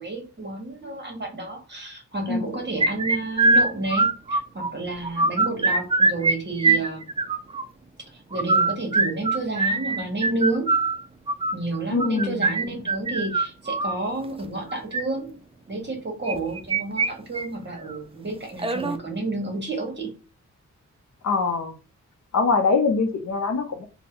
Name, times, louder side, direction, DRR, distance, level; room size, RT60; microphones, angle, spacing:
voice 1, 0.0-7.0 8.1-10.7 11.5-15.3 15.7-20.1, right 2 dB, 35° right, 2 dB, 1.3 m, -30 dB
sound 1, 2.8-4.7 5.0-6.3 6.6-7.6 8.3-14.0 14.7-15.0 16.3-17.1 17.4-17.5 17.9-18.0 18.6-19.0, right 3 dB, 20° right, 0.4 m, -22 dB
voice 2, 11.9-12.7 21.2-21.7 22.3-23.9, left 4 dB, 60° left, 7 dB, 0.7 m, -23 dB
4.0 x 2.2 x 3.7 m, 0.34 s
wide cardioid pair, 110°, 31 cm